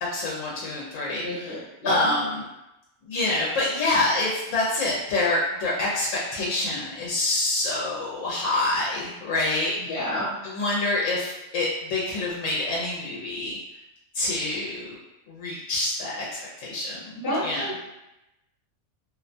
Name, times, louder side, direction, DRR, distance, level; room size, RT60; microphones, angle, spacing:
voice 1, 0.1-1.6 1.8-2.2 3.0-9.9 10.4-13.6 14.1-15.0 15.3-16.3 16.6-17.1 17.4-17.7, left 2 dB, 80° left, -6 dB, 1.0 m, -26 dB
voice 2, 1.2-2.1 9.8-10.3 17.2-17.8, left 1 dB, 50° left, -8 dB, 1.0 m, -28 dB
2.5 x 2.2 x 2.5 m, 0.92 s
omnidirectional pair, 1.3 m